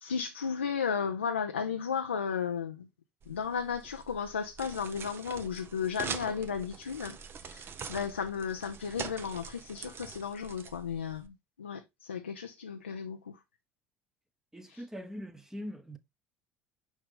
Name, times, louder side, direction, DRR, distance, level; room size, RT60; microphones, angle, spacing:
voice 1, 0.0-2.9 3.3-13.4 14.7-14.8, left 6 dB, 85° left, 0.5 m, -34 dB
sound 1, 3.2-11.3, right 6 dB, 40° right, 1.0 m, -44 dB
voice 2, 14.5-16.0, equal, 5° right, 1.0 m, -42 dB
6.2 x 5.1 x 3.4 m
figure-of-eight pair, 65°, 6 cm